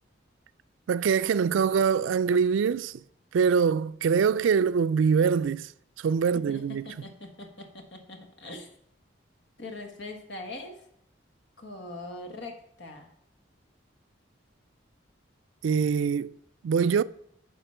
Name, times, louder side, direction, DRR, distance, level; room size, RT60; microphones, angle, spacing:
voice 1, 0.9-2.9 3.3-5.7 6.0-6.8 15.6-16.3 16.6-17.0, right 6 dB, 80° right, 0.3 m, -24 dB
voice 2, 6.3-8.7 9.6-10.9 11.6-13.1, left 2 dB, 65° left, 1.6 m, -42 dB
11.5 x 4.3 x 5.6 m
head